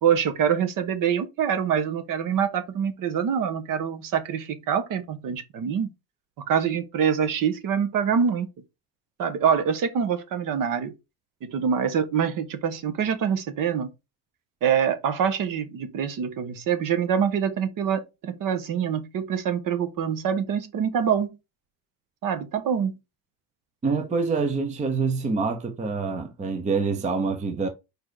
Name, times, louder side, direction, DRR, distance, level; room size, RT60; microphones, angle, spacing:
voice 1, 0.0-5.9 6.5-8.5 9.2-10.9 11.4-13.9 14.6-21.3 22.2-22.9, right 7 dB, 50° right, 1.1 m, -25 dB
voice 2, 23.8-27.7, right 4 dB, 15° right, 0.7 m, -26 dB
4.7 x 4.5 x 4.7 m
cardioid pair, 180°, 43 cm